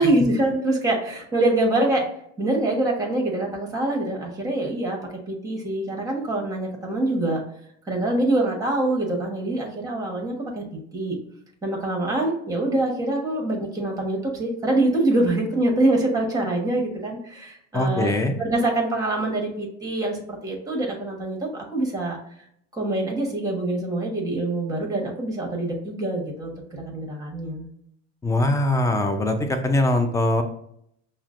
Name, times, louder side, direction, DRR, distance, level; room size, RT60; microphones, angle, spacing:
voice 1, 0.0-2.1 2.4-5.0 5.3-7.4 7.8-10.6 10.9-11.2 11.6-22.2 22.7-27.7, right 2 dB, 10° right, 0 dB, 1.1 m, -25 dB
voice 2, 17.7-18.3 28.2-30.4, left 1 dB, 10° left, 6 dB, 0.4 m, -22 dB
5.7 x 2.2 x 2.4 m, 0.72 s
supercardioid pair, 105°, 33 cm